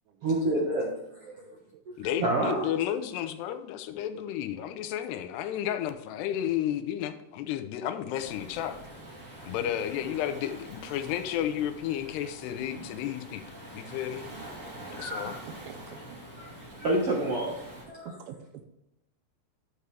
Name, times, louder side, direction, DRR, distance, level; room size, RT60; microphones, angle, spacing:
voice 1, 0.2-0.9 1.2-1.4 2.2-2.7 14.9-15.4 16.4-16.5 16.8-18.2, right 1 dB, 60° right, -2 dB, 1.6 m, -28 dB
voice 2, 1.4-2.0 15.7-16.4 18.2-18.7, right 7 dB, 75° right, 8 dB, 2.5 m, -48 dB
voice 3, 2.0-8.8 9.5-14.3 14.9-15.3, left 11 dB, 85° left, 10 dB, 2.8 m, -32 dB
Waves surf, 8.1-17.9, right 1 dB, 25° right, 2.0 m, -45 dB
11.0 x 6.8 x 3.3 m, 0.90 s
omnidirectional pair, 4.7 m